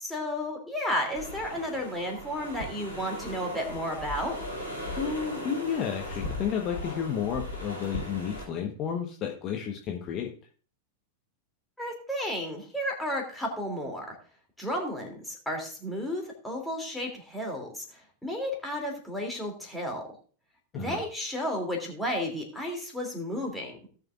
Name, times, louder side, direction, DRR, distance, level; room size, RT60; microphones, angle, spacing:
voice 1, 0.0-4.4 11.8-14.1 14.6-20.0 20.7-23.8, equal, 5° left, 0 dB, 2.9 m, -33 dB
sound 1, 1.1-8.5, left 1 dB, 90° left, 5.5 m, -38 dB
voice 2, 5.0-10.3 20.7-21.0, left 8 dB, 35° left, 2 dB, 1.2 m, -32 dB
17.5 x 6.5 x 2.5 m, 0.41 s
figure-of-eight pair, 90°, 0 cm